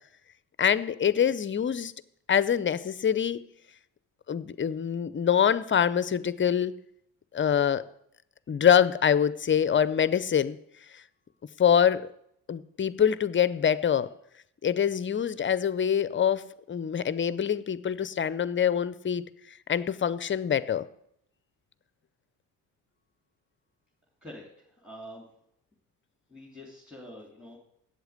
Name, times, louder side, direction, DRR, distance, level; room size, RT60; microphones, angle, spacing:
voice 1, 0.6-1.9 2.3-3.4 4.3-6.7 7.3-7.8 8.5-10.6 11.6-12.1 12.5-14.1 14.6-19.2 19.7-20.9, left 8 dB, 25° left, 17 dB, 0.6 m, -25 dB
voice 2, 24.8-25.2 26.3-27.6, equal, ahead, -2 dB, 3.0 m, -45 dB
8.1 x 8.0 x 8.2 m, 0.72 s
hypercardioid pair, 55°, 47 cm